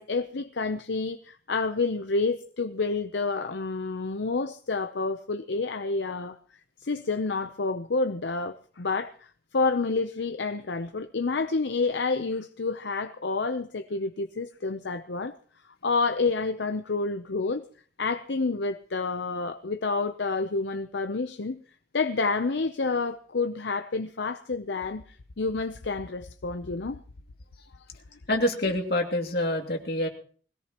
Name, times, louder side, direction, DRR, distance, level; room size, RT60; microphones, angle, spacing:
voice 1, 0.0-6.4 6.8-15.4 15.8-17.7 18.0-21.6 21.9-27.0, left 3 dB, 70° left, 0.7 m, -29 dB
voice 2, 28.3-30.1, left 1 dB, 55° left, 2.6 m, -26 dB
21.0 x 17.0 x 3.0 m
head